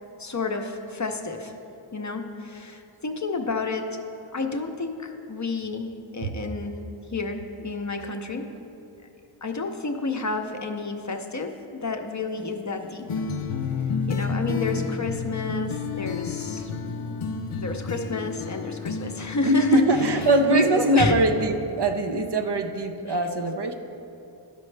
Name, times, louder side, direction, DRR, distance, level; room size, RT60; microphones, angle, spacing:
voice 1, 0.2-1.5 1.9-4.0 4.3-6.8 7.1-8.5 9.4-13.1 14.1-16.7 17.5-21.2 23.1-23.3, left 3 dB, 35° left, 5 dB, 0.6 m, -30 dB
sound 1, 12.2-19.7, right 1 dB, 10° right, 0.9 m, -47 dB
sound 2, 13.1-21.5, left 5 dB, 85° left, 0.6 m, -31 dB
voice 2, 19.4-23.7, right 1 dB, 55° right, 6 dB, 0.6 m, -22 dB
12.0 x 5.3 x 3.3 m, 2.7 s
wide cardioid pair, 40°, 49 cm